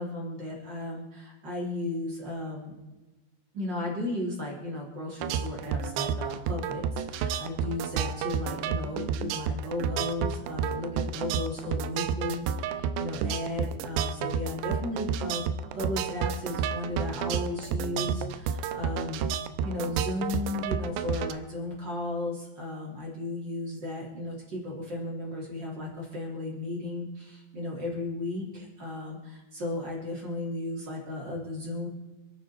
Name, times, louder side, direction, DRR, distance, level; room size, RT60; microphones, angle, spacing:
voice 1, 0.0-2.7 3.5-19.2 19.6-31.9, left 2 dB, 25° right, -2 dB, 3.2 m, -35 dB
sound 1, 5.2-21.3, right 7 dB, 90° right, 2.5 m, -31 dB
27.5 x 9.4 x 4.4 m, 1.1 s
omnidirectional pair, 5.7 m